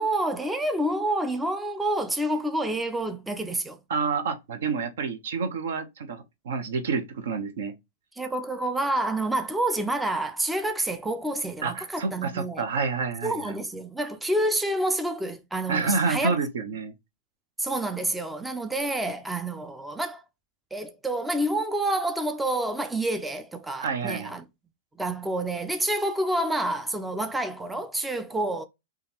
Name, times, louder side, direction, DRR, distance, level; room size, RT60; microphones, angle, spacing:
voice 1, 0.0-3.8 8.2-12.6 13.2-16.4 17.6-20.2 20.7-24.4 25.0-28.6, right 1 dB, 5° right, 0.4 m, -28 dB
voice 2, 3.9-7.7 11.6-13.5 15.7-16.9 23.8-24.3, right 5 dB, 75° right, 0.9 m, -28 dB
3.7 x 2.3 x 2.9 m
hypercardioid pair, 130°, 0 cm